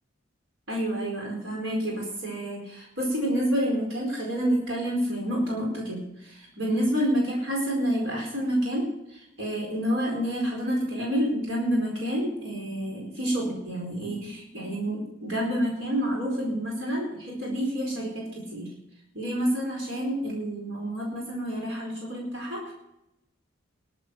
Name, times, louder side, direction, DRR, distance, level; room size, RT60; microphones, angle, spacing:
voice 1, 0.7-18.7 19.1-22.7, equal, 75° right, -2 dB, 4.4 m, -28 dB
20.0 x 8.2 x 6.0 m, 0.85 s
head